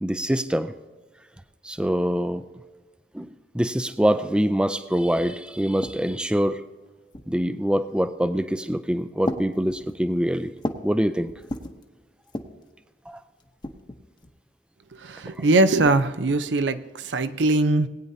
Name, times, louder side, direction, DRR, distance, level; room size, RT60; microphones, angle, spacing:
voice 1, 0.0-0.7 1.6-2.4 3.1-6.6 7.3-10.5 10.8-11.3 13.1-13.2, equal, 5° right, 10 dB, 0.4 m, -24 dB
sound 1, 4.8-4.9 5.1-6.3 7.1-7.6 8.4-8.8 9.2-11.0 11.3-11.8 12.2-12.7 13.4-14.4, left 1 dB, 25° left, 0.8 m, -35 dB
voice 2, 15.0-17.9, right 2 dB, 90° right, 11 dB, 0.7 m, -21 dB
19.5 x 9.3 x 2.8 m, 1.3 s
head